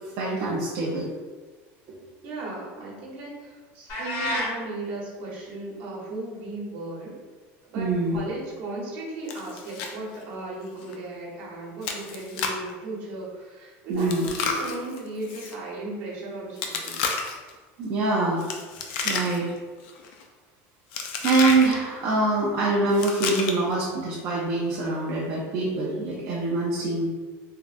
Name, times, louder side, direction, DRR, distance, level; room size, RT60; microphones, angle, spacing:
voice 1, 0.2-1.1 1.9-2.0 7.8-8.2 13.9-14.3 17.8-18.4 19.0-19.5 21.2-27.1, right 2 dB, 35° right, -6 dB, 0.4 m, -24 dB
voice 2, 2.2-7.2 7.7-17.1, right 2 dB, 60° right, -4 dB, 0.9 m, -36 dB
sound 1, 3.9-4.5, left 1 dB, 45° left, 0.8 m, -28 dB
Chewing mastication, 9.3-9.9 10.2-10.3 10.8-11.0 11.8-12.7 14.0-15.5 16.6-17.5 18.4-19.6 19.8-20.2 20.9-21.7 22.9-23.7, left 5 dB, 65° left, 0.4 m, -31 dB
3.4 x 2.0 x 2.4 m, 1.3 s
cardioid pair, 180°, 7 cm